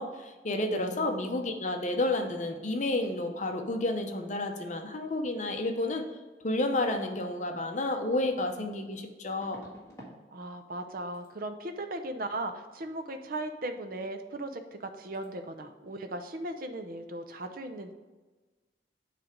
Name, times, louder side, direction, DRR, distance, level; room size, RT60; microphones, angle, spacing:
voice 1, 0.0-6.0 6.4-9.6, left 2 dB, 45° left, 4 dB, 0.8 m, -31 dB
voice 2, 0.7-1.3 10.3-17.9, right 1 dB, 55° right, 7 dB, 0.6 m, -37 dB
sound 1, 9.4-10.2 10.5-10.9 11.1-11.3 14.3-14.4 14.6-14.9 15.1-15.3, equal, 20° left, 1.7 m, -51 dB
8.6 x 3.4 x 5.0 m, 1.2 s
head